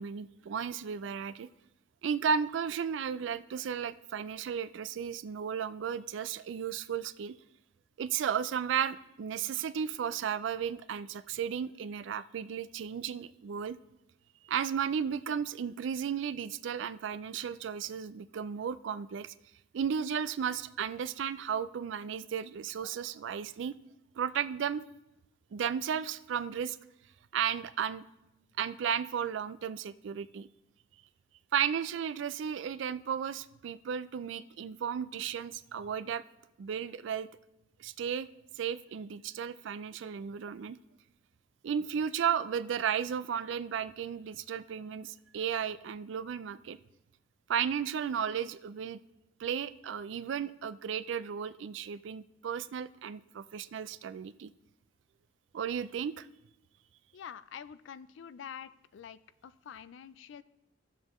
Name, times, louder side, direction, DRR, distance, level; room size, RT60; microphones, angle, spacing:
voice 1, 0.0-1.5 2.0-7.4 8.0-13.8 14.4-19.3 19.7-23.8 24.2-24.8 25.5-26.8 27.3-28.0 28.6-30.5 31.5-36.2 36.6-37.3 37.8-38.3 38.6-40.8 41.6-46.8 47.5-49.0 49.4-54.5 55.5-56.3, right 7 dB, 70° right, 15 dB, 0.3 m, -34 dB
voice 2, 57.1-60.4, left 8 dB, 70° left, 15 dB, 0.3 m, -47 dB
12.5 x 7.4 x 3.0 m, 0.87 s
head